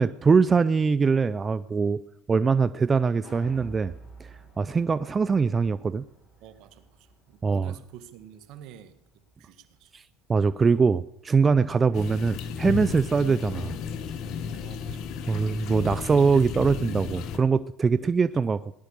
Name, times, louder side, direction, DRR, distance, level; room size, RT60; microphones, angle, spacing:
voice 1, 0.0-2.0 2.3-3.9 4.2-6.1 7.4-7.7 10.3-13.8 15.3-18.6, right 5 dB, 25° right, 15 dB, 0.5 m, -23 dB
sound 1, 3.2-9.5 9.8-9.9, right 2 dB, 30° left, 7.9 m, -51 dB
voice 2, 6.4-9.9 14.5-15.1 17.9-18.2, right 10 dB, 60° right, 11 dB, 2.0 m, -49 dB
sound 2, 11.9-17.4, left 6 dB, 55° left, 1.6 m, -33 dB
18.0 x 11.5 x 6.7 m, 0.75 s
supercardioid pair, 95°, 0 cm